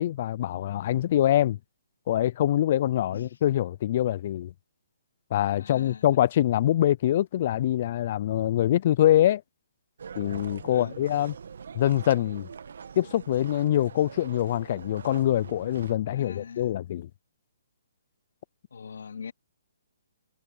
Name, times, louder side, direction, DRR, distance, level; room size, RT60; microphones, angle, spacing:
voice 1, 0.0-1.6 2.1-4.5 5.3-9.4 10.2-11.3 11.7-12.5 13.0-17.1, left 12 dB, 45° left, 0.4 m, -24 dB
voice 2, 5.6-6.0 10.7-11.0 16.1-16.8 18.7-19.3, left 6 dB, 75° left, 2.6 m, -41 dB
sound 1, 10.0-15.9, right 6 dB, 70° right, 1.5 m, -43 dB
hypercardioid pair, 150°, 0 cm